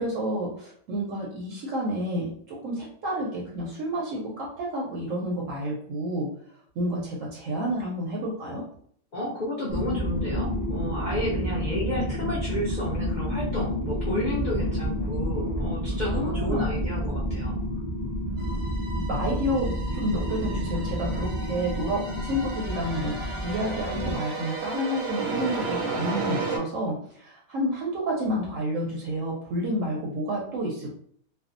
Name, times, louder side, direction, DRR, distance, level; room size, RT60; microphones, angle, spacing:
voice 1, 0.0-6.3 6.8-8.6 16.0-16.7 18.5-18.6 19.1-30.9, equal, 70° right, -3 dB, 0.9 m, -30 dB
voice 2, 9.1-17.6, left 1 dB, 90° left, -5 dB, 0.4 m, -32 dB
sound 1, 9.7-24.1, equal, 10° right, 0.4 m, -29 dB
sound 2, 18.4-26.6, right 3 dB, 90° right, 1.2 m, -34 dB
2.5 x 2.2 x 2.4 m, 0.63 s
omnidirectional pair, 1.5 m